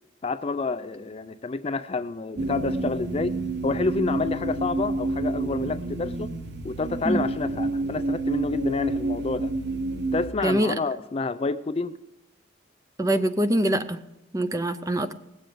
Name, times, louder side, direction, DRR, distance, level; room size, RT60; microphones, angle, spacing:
voice 1, 0.2-6.3 6.6-9.5 10.1-12.0, left 3 dB, 30° left, 12 dB, 0.4 m, -29 dB
sound 1, 2.4-10.3, right 2 dB, 60° right, 0.8 m, -29 dB
voice 2, 10.4-10.8 13.0-14.0 14.3-15.1, right 1 dB, 15° right, 11 dB, 0.6 m, -24 dB
19.0 x 7.7 x 5.1 m, 0.92 s
head